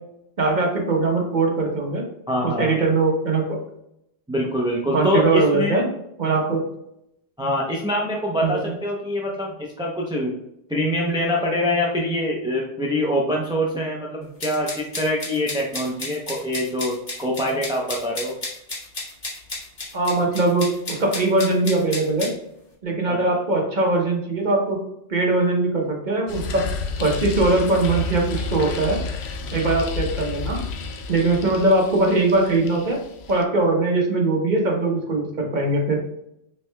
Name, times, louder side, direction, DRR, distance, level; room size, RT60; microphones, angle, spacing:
voice 1, 0.4-2.0 2.4-3.5 4.9-5.9 6.2-6.6 8.4-8.7 19.9-22.3 22.8-24.8 25.1-26.6 27.0-29.0 29.5-30.6 31.1-33.0 33.3-36.0, right 2 dB, 40° right, 0 dB, 1.0 m, -21 dB
voice 2, 2.3-2.8 4.3-5.8 7.4-10.3 10.7-18.3 23.1-23.2 30.1-30.2, equal, 5° right, -2 dB, 0.4 m, -24 dB
sound 1, 14.4-22.3, left 2 dB, 40° left, 1.5 m, -33 dB
sound 2, 26.3-33.4, left 4 dB, 65° left, 0.8 m, -31 dB
5.9 x 3.4 x 2.2 m, 0.79 s
omnidirectional pair, 1.3 m